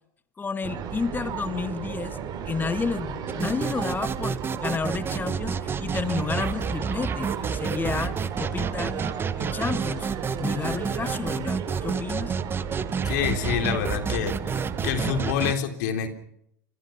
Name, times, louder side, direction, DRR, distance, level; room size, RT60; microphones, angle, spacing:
voice 1, 0.4-2.2 2.4-9.1 9.4-10.1 10.4-12.3, left 5 dB, 20° left, 11 dB, 1.6 m, -31 dB
sound 1, 0.6-15.4, right 7 dB, 45° right, 6.8 m, -34 dB
sound 2, 3.3-15.5, right 6 dB, 25° right, 1.2 m, -30 dB
voice 2, 13.0-14.4 14.8-16.1, left 8 dB, 70° left, 5 dB, 3.7 m, -26 dB
26.0 x 22.0 x 5.9 m, 0.74 s
hypercardioid pair, 95°, 10 cm